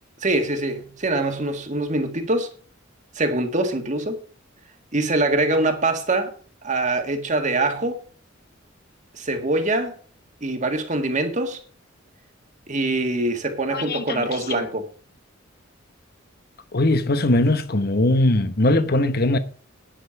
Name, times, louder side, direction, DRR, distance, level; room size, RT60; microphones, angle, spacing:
voice 1, 0.2-2.5 3.1-4.2 4.9-6.3 6.6-8.0 9.1-9.9 10.4-11.6 12.7-14.9, right 2 dB, 40° right, 1.7 m, -24 dB
voice 2, 13.7-14.3 16.7-19.4, left 1 dB, 50° left, 1.0 m, -20 dB
10.5 x 6.8 x 6.9 m
head